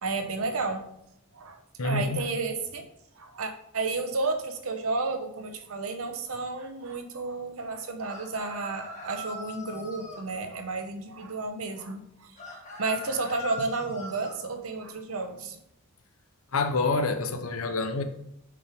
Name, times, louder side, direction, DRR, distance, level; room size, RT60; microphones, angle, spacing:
voice 1, 0.0-0.8 1.3-2.8 3.2-12.4 12.8-15.6, right 3 dB, 90° right, 6 dB, 0.9 m, -32 dB
voice 2, 1.8-2.2 16.5-18.0, left 3 dB, 85° left, 8 dB, 0.8 m, -27 dB
sound 1, 8.0-10.3 12.4-14.4, left 1 dB, 35° left, 1.6 m, -41 dB
6.7 x 5.1 x 3.5 m, 0.78 s
head